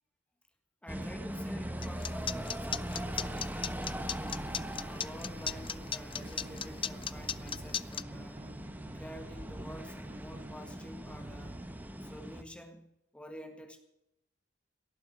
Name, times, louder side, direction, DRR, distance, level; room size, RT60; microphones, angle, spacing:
voice 1, 0.8-4.5 4.8-8.5 8.8-11.6 12.0-13.8, equal, 5° left, 5 dB, 1.7 m, -49 dB
sound 1, 0.9-12.4, right 1 dB, 10° right, 1.0 m, -41 dB
sound 2, 1.8-8.0, left 8 dB, 25° left, 0.4 m, -35 dB
sound 3, 4.2-12.0, right 1 dB, 35° right, 0.7 m, -51 dB
17.5 x 7.5 x 7.6 m, 0.83 s
head